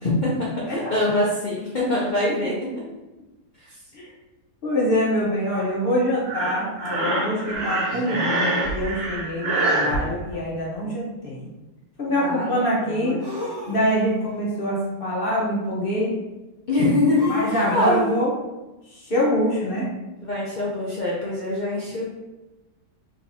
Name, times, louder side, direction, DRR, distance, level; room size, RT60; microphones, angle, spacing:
voice 1, 0.0-2.7 12.1-13.2 16.7-18.1 20.2-22.1, left 1 dB, 70° left, -6 dB, 0.4 m, -24 dB
voice 2, 4.6-11.5 12.0-13.2 13.7-16.1 17.3-18.3 18.9-19.9, equal, 40° left, -5 dB, 0.9 m, -24 dB
Breathing, 6.2-10.0, right 2 dB, 90° right, 1.6 m, -25 dB
sound 1, 6.8-6.9 7.9-8.6 9.8-10.6 13.2-14.2 17.1-18.2, equal, 20° right, 0.6 m, -37 dB
4.6 x 3.5 x 2.7 m, 1.1 s
omnidirectional pair, 1.8 m